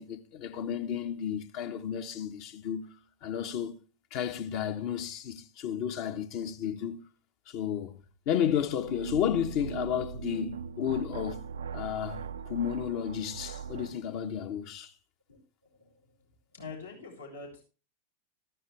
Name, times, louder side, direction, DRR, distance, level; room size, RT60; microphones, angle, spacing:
voice 1, 0.0-3.8 4.1-7.0 7.5-11.4 11.7-14.9, left 9 dB, 45° left, 1.3 m, -32 dB
sound 1, 8.8-14.0, right 7 dB, 70° right, 0.6 m, -40 dB
voice 2, 16.5-17.6, left 4 dB, 80° left, 6.8 m, -44 dB
14.5 x 12.5 x 3.4 m
figure-of-eight pair, 90°, 0 cm